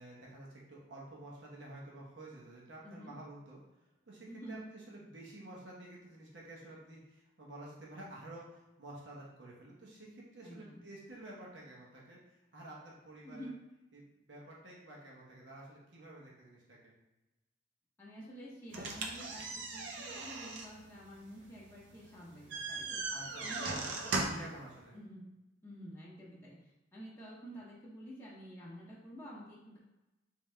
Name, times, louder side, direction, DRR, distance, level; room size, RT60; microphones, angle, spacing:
voice 1, 0.0-3.6 4.1-12.2 12.5-13.5 13.9-16.9 22.7-22.8 23.1-24.0 24.4-25.0, right 1 dB, 70° right, -4 dB, 1.0 m, -51 dB
voice 2, 2.8-3.1 4.3-4.6 10.4-10.8 13.2-13.5 18.0-23.8 24.2-24.5 24.9-25.3 25.6-29.8, equal, 15° left, -8 dB, 0.7 m, -49 dB
sound 1, 18.7-24.6, right 3 dB, 90° right, 0.6 m, -39 dB
3.5 x 3.4 x 3.2 m, 1.0 s
head